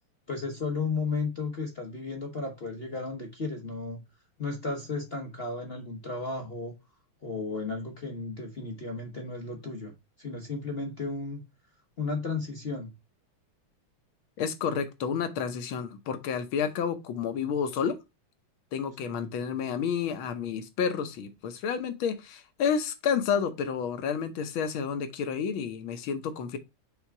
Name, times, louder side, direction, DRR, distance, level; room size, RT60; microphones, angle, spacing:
voice 1, 0.3-4.0 4.4-6.7 7.2-11.4 12.0-12.9 19.0-19.3, left 3 dB, 45° left, 0.7 m, -34 dB
voice 2, 14.4-17.9 18.7-26.6, left 7 dB, 70° left, 1.6 m, -30 dB
5.9 x 3.5 x 4.5 m
omnidirectional pair, 2.4 m